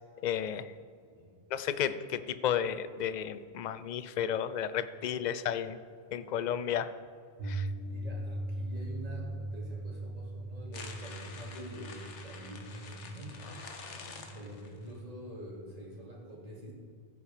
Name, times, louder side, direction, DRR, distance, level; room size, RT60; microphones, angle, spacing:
voice 1, 0.2-0.7 1.5-5.8 6.1-6.9 7.4-7.7, left 9 dB, 55° left, 13 dB, 0.5 m, -33 dB
voice 2, 1.0-1.3 7.8-13.5 14.1-16.7, equal, 30° right, -4 dB, 3.1 m, -46 dB
Piano, 7.4-15.5, right 1 dB, 80° right, 2.0 m, -40 dB
sound 1, 10.7-14.9, left 4 dB, 85° left, 1.4 m, -47 dB
14.5 x 8.2 x 5.0 m, 2.3 s
omnidirectional pair, 1.2 m